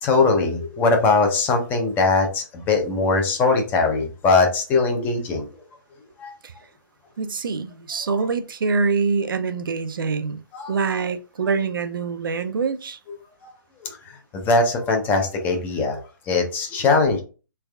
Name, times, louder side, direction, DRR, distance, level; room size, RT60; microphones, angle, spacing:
voice 1, 0.0-5.5 6.2-6.4 10.5-10.7 13.4-13.5 13.8-17.2, left 3 dB, 15° left, 0.6 m, -21 dB
voice 2, 7.2-10.4 10.7-13.0, right 4 dB, 75° right, 0.5 m, -25 dB
3.3 x 3.3 x 2.3 m
hypercardioid pair, 150°, 11 cm